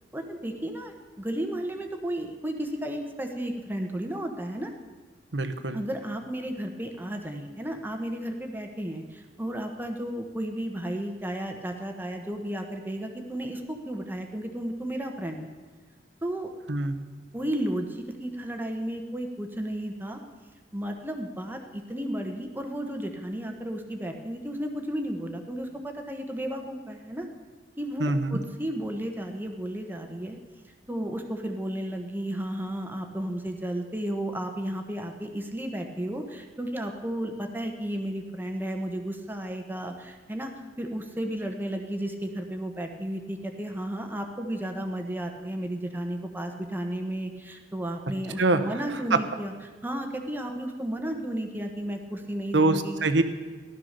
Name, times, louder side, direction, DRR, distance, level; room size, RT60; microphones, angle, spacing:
voice 1, 0.1-4.7 5.7-15.5 16.2-16.5 17.3-20.2 20.7-27.3 27.8-30.4 30.9-49.5 49.8-53.0, right 1 dB, 10° right, 3 dB, 1.2 m, -33 dB
voice 2, 5.3-5.8 16.7-17.0 28.0-28.4 48.4-48.8 49.1-49.2 52.5-53.2, right 2 dB, 85° right, 8 dB, 1.1 m, -24 dB
15.5 x 12.0 x 6.7 m, 1.4 s
head